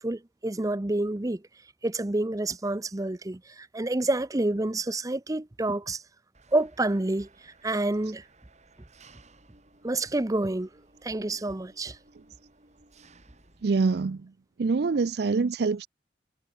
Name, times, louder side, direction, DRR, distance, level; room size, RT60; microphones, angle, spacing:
voice 1, 0.0-1.4 1.8-3.4 3.7-6.0 6.5-7.3 7.6-8.2 9.8-10.7 11.0-11.9, right 2 dB, 20° right, 0.6 m, -28 dB
Engine, 6.3-13.8, right 3 dB, 40° right, 6.7 m, -58 dB
voice 2, 13.6-14.3 14.6-15.9, right 4 dB, 60° right, 0.5 m, -25 dB
head